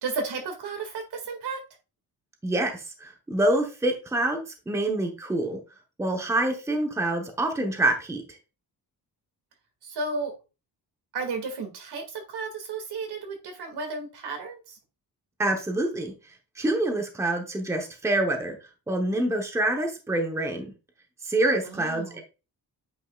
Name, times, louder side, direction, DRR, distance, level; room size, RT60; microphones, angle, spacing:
voice 1, 0.0-1.7 9.8-10.3 11.1-14.8 21.6-22.2, right 4 dB, 75° right, 3 dB, 2.1 m, -33 dB
voice 2, 2.4-5.6 6.0-8.2 15.4-16.1 16.6-18.5 18.9-20.7 21.2-22.2, right 1 dB, 5° right, 4 dB, 0.9 m, -26 dB
8.7 x 5.5 x 2.3 m, 0.30 s
wide cardioid pair, 180°, 39 cm